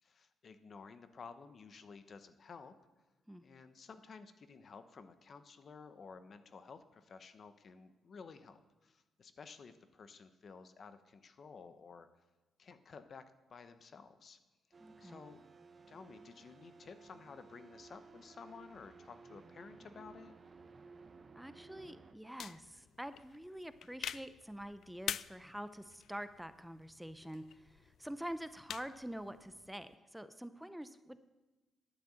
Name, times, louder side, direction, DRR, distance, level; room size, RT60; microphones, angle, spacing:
voice 1, 0.0-2.7 3.4-12.1 12.6-13.2 13.5-14.4 15.0-15.4 15.9-20.4, left 5 dB, 50° left, 10 dB, 1.0 m, -54 dB
sound 1, 14.7-22.1, right 4 dB, 35° right, 0.9 m, -57 dB
voice 2, 14.8-15.2 21.3-31.2, equal, 5° right, 12 dB, 0.6 m, -46 dB
sound 2, 22.4-29.9, left 9 dB, 70° left, 0.3 m, -47 dB
10.5 x 9.3 x 7.8 m, 1.1 s
cardioid pair, 95°, 0 cm